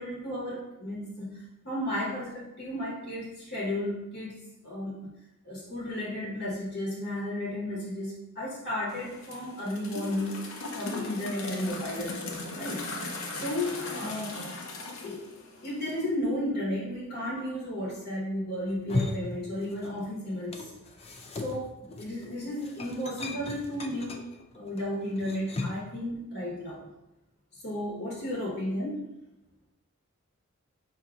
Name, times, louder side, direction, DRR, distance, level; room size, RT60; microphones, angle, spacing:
voice 1, 0.0-5.1 5.4-10.4 10.7-12.9 13.3-14.5 15.0-15.2 15.6-20.7 21.4-24.2 24.5-26.8 27.6-29.0, left 1 dB, 50° left, -5 dB, 1.0 m, -33 dB
sound 1, 8.9-16.0, left 2 dB, 65° left, 0.6 m, -38 dB
sound 2, 18.7-20.1 20.3-25.9, left 3 dB, 30° left, 0.4 m, -37 dB
4.8 x 2.7 x 3.5 m, 0.91 s
head